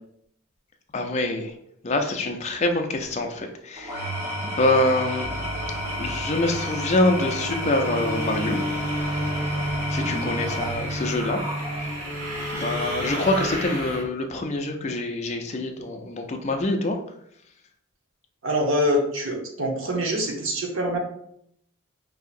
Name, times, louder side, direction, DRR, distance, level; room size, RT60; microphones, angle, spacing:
voice 1, 0.9-1.6 1.8-4.1 4.4-5.3 6.0-8.6 9.9-11.4 11.8-11.9 12.5-17.0, left 2 dB, 30° left, 4 dB, 0.5 m, -25 dB
Engine / Tools, 3.8-12.1, equal, 10° right, 0.9 m, -31 dB
sound 1, 5.2-14.0, right 1 dB, 90° right, 1.6 m, -31 dB
voice 2, 18.4-21.0, equal, 60° right, 1 dB, 0.9 m, -25 dB
5.5 x 2.7 x 2.5 m, 0.71 s
head